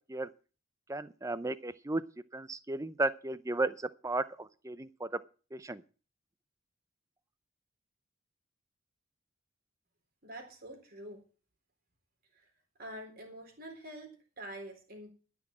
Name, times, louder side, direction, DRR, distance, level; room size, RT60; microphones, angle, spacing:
voice 1, 0.9-2.0 2.3-5.1 5.5-5.8, right 2 dB, 15° right, 15 dB, 0.5 m, -34 dB
voice 2, 10.2-11.2 12.3-12.5 12.8-15.1, right 1 dB, 45° right, 2 dB, 3.9 m, -46 dB
13.5 x 6.1 x 7.4 m, 0.36 s
head